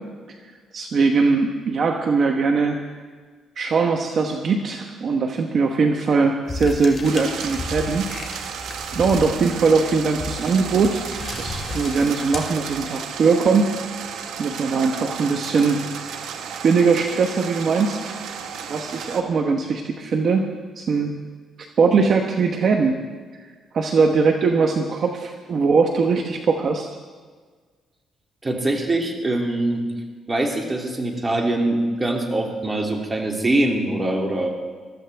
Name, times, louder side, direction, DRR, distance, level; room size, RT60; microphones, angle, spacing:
voice 1, 0.7-2.8 3.6-8.1 8.4-8.5 8.9-11.1 11.4-13.7 14.4-16.3 16.6-18.2 18.7-20.5 20.8-21.1 21.8-22.9 23.7-26.9, right 4 dB, 55° right, 3 dB, 1.1 m, -20 dB
sound 1, 6.5-13.1, left 3 dB, 25° left, 2.5 m, -34 dB
sound 2, 7.0-19.2, right 7 dB, 80° right, 1.1 m, -33 dB
voice 2, 28.4-29.8 30.3-34.5, right 1 dB, 25° right, 1 dB, 2.7 m, -23 dB
22.0 x 13.5 x 3.5 m, 1.5 s
cardioid pair, 90°, 0 cm